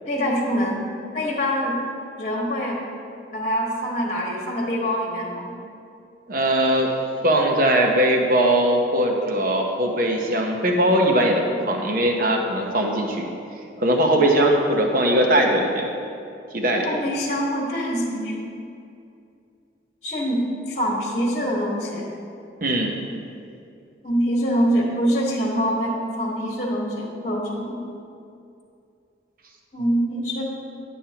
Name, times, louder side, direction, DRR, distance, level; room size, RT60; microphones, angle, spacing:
voice 1, 0.1-0.9 1.1-1.8 2.2-2.8 3.3-5.6 16.8-18.4 20.0-22.1 24.0-27.8 29.7-30.4, equal, 40° left, -2 dB, 1.3 m, -24 dB
voice 2, 6.3-6.9 7.2-13.2 13.8-15.9 16.5-17.0 22.6-22.9, right 1 dB, 50° right, 1 dB, 0.9 m, -20 dB
11.5 x 7.4 x 2.9 m, 2.6 s
head